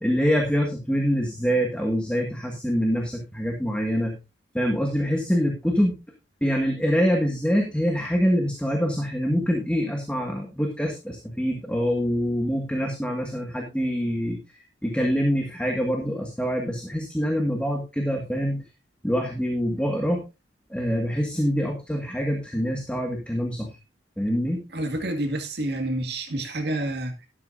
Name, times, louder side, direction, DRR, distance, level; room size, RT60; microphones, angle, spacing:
voice 1, 0.0-4.2 4.5-6.0 6.4-14.4 14.8-18.6 19.0-20.3 20.7-23.7 24.2-24.6, equal, 5° left, 1.8 m, -25 dB
voice 2, 24.7-27.3, right 1 dB, 55° right, 2.1 m, -28 dB
12.5 x 12.0 x 2.6 m
head